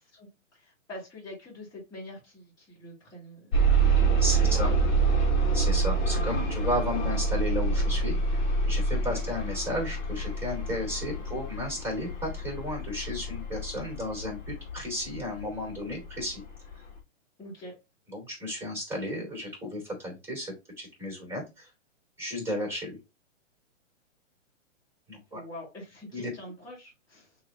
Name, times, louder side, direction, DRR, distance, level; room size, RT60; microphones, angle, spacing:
voice 1, 0.1-4.7 9.1-9.2 17.4-17.7 25.3-27.3, left 1 dB, 10° left, -8 dB, 2.4 m, -45 dB
sound 1, 3.5-15.4 16.2-16.3 16.7-16.8, right 3 dB, 40° left, 1.6 m, -26 dB
voice 2, 4.2-4.7 5.5-8.4 8.7-16.4 18.1-21.7 22.2-23.0 25.1-25.4 26.1-26.3, left 1 dB, 5° right, -1 dB, 3.0 m, -33 dB
6.3 x 2.9 x 2.5 m, 0.24 s
hypercardioid pair, 155°, 38 cm